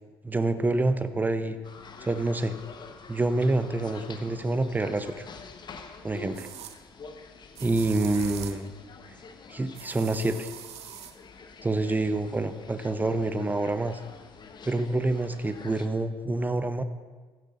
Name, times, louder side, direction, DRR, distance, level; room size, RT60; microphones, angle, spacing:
voice 1, 0.2-1.6 2.0-2.5 3.1-5.3 6.0-6.5 7.6-8.7 9.1-9.2 9.5-10.5 11.6-14.0 14.6-16.8, right 2 dB, 15° right, 11 dB, 0.8 m, -27 dB
sound 1, 1.6-15.9, left 5 dB, 35° left, 1.1 m, -47 dB
sound 2, 5.2-5.3 6.3-6.8 7.6-8.7 9.8-11.2, right 11 dB, 55° right, 0.7 m, -42 dB
15.5 x 13.5 x 2.6 m, 1.4 s
hypercardioid pair, 60°, 13 cm